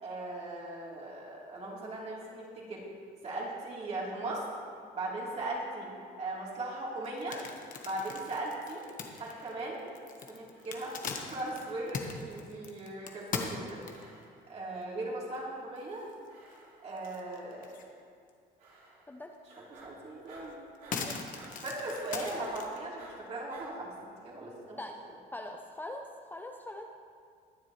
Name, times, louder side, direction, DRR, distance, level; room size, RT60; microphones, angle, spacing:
voice 1, 0.0-2.8 3.2-4.4 4.9-5.9 6.2-7.4 7.8-8.8 9.2-9.8 10.3-13.8 14.5-16.0 16.8-17.7 19.7-20.6 21.5-23.9 24.2-24.8, right 2 dB, 40° right, -5 dB, 3.3 m, -38 dB
sound 1, 7.0-14.2 14.8-14.9 15.3-15.4 15.8-16.6 17.0-17.9 18.3-18.4 19.8-19.9 20.3-22.8, left 5 dB, 50° left, 1.2 m, -40 dB
sound 2, 9.1-9.9 10.5-11.2 11.5-12.2 12.8-13.5 13.9-14.5 15.1-15.8 16.3-17.0 17.4-17.9 18.6-19.2 19.5-23.7, right 2 dB, 60° right, 2.9 m, -56 dB
voice 2, 25.3-26.9, left 1 dB, 10° left, 3 dB, 0.6 m, -42 dB
22.0 x 7.3 x 3.1 m, 2.2 s
cardioid pair, 110°, 17 cm